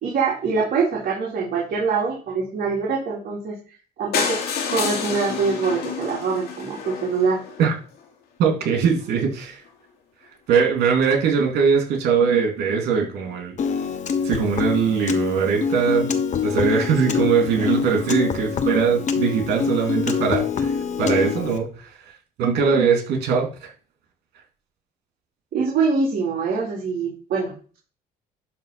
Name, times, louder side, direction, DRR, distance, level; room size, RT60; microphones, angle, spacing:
voice 1, 0.0-3.6 4.0-4.4 4.7-7.4 25.5-27.5, right 5 dB, 60° right, -4 dB, 3.2 m, -24 dB
sound 1, 4.1-8.0 8.7-8.8 9.0-9.1 9.4-9.5 9.7-9.8, left 6 dB, 75° left, 2.6 m, -29 dB
voice 2, 8.4-9.6 10.5-13.6 14.2-16.1 16.4-21.7 22.4-23.7, right 6 dB, 75° right, 2 dB, 3.2 m, -21 dB
Piano, 13.6-21.6, left 6 dB, 45° left, 1.2 m, -25 dB
11.0 x 3.9 x 6.0 m, 0.40 s
cardioid pair, 110°, 17 cm